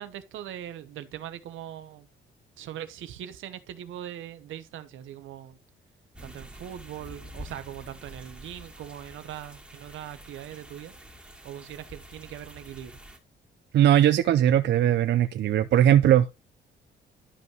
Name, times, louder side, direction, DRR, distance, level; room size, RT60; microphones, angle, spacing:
voice 1, 0.0-2.1 2.6-5.6 6.2-11.0 11.4-13.0, right 11 dB, 80° right, 1.0 m, -41 dB
sound 1, 6.1-13.2, right 1 dB, 5° right, 2.1 m, -47 dB
voice 2, 13.7-16.3, right 11 dB, 60° right, 0.5 m, -20 dB
11.5 x 5.5 x 2.9 m
cardioid pair, 90°, 20 cm